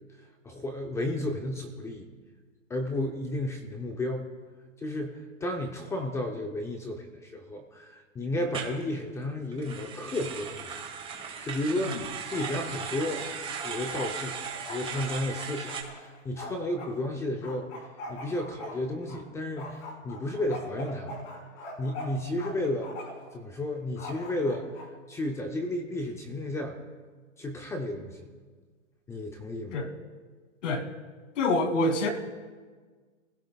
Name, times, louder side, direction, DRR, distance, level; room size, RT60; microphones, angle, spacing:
voice 1, 0.4-2.1 2.7-4.3 4.8-10.8 11.1-12.0 12.3-13.3 13.6-17.7 18.1-21.3 21.8-22.9 23.3-24.7 25.1-26.8 27.4-28.3 29.1-29.8, left 1 dB, 5° left, 4 dB, 0.5 m, -33 dB
sound 1, 8.5-8.8 9.5-15.8, right 6 dB, 15° right, 1.5 m, -37 dB
Bark, 12.0-12.6 12.9-16.9 17.4-19.2 19.6-22.5 22.8-23.3 24.0-24.9, left 1 dB, 40° left, 3.9 m, -42 dB
voice 2, 31.4-32.1, left 2 dB, 65° left, 5 dB, 2.5 m, -26 dB
29.0 x 16.0 x 2.3 m, 1.5 s
hypercardioid pair, 145°, 40 cm